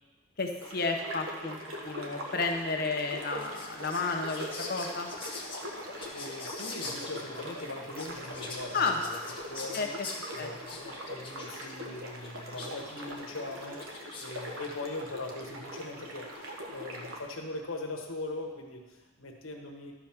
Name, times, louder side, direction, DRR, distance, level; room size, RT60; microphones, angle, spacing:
voice 1, 0.4-1.6 1.8-5.1 8.7-9.0 9.7-9.9 10.4-10.5, left 4 dB, 45° left, 3 dB, 0.7 m, -31 dB
sound 1, 0.6-17.2, equal, 80° right, 1.3 m, -42 dB
Whispering, 3.1-14.5, left 3 dB, 25° left, 1.1 m, -44 dB
voice 2, 6.1-9.2 9.5-9.9 10.3-16.3 16.7-19.9, left 2 dB, 80° left, 1 dB, 1.2 m, -41 dB
12.0 x 5.0 x 5.9 m, 1.2 s
head